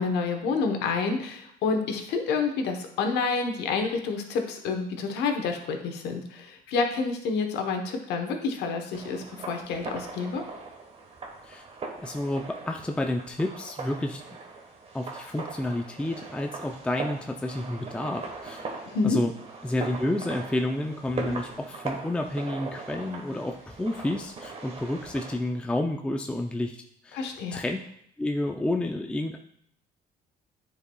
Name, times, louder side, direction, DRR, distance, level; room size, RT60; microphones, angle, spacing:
voice 1, 0.0-10.4 18.9-19.2 27.1-27.6, left 4 dB, 80° left, 4 dB, 1.0 m, -28 dB
sound 1, 8.9-25.4, right 4 dB, 35° right, 1.2 m, -40 dB
voice 2, 12.0-14.2 14.9-18.7 19.0-19.3 19.6-27.8 28.2-29.4, left 1 dB, 5° left, 3 dB, 0.4 m, -30 dB
9.8 x 4.7 x 2.3 m, 0.69 s
cardioid pair, 110°, 17 cm